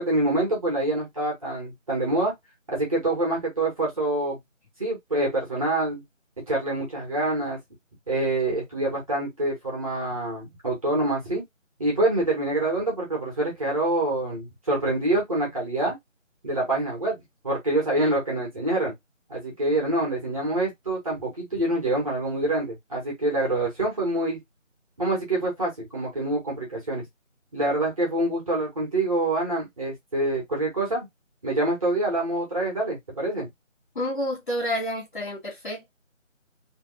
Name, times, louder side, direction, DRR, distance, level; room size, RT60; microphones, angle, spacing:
voice 1, 0.0-2.3 2.7-4.4 4.8-6.0 6.5-7.6 8.1-11.4 11.8-16.0 16.4-17.2 17.4-18.9 19.3-24.4 25.0-27.0 27.5-31.1 31.4-33.5, right 2 dB, 25° right, 2.2 m, -26 dB
voice 2, 33.9-35.9, equal, 40° left, 3.0 m, -29 dB
4.3 x 3.7 x 2.5 m
figure-of-eight pair, 165°, 39 cm